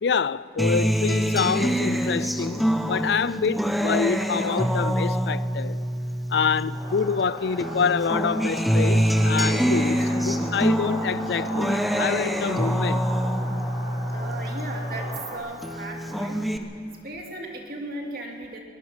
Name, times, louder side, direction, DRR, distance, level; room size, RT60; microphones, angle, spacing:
voice 1, 0.0-5.8 6.3-13.0, left 6 dB, 75° left, 0.4 m, -26 dB
Acoustic guitar, 0.6-7.2 7.6-15.2 15.6-16.6, equal, ahead, 0.9 m, -25 dB
sound 1, 6.7-15.4, equal, 15° right, 6.8 m, -37 dB
voice 2, 14.1-16.4 17.0-18.6, right 2 dB, 55° right, 2.8 m, -36 dB
22.5 x 19.5 x 5.9 m
head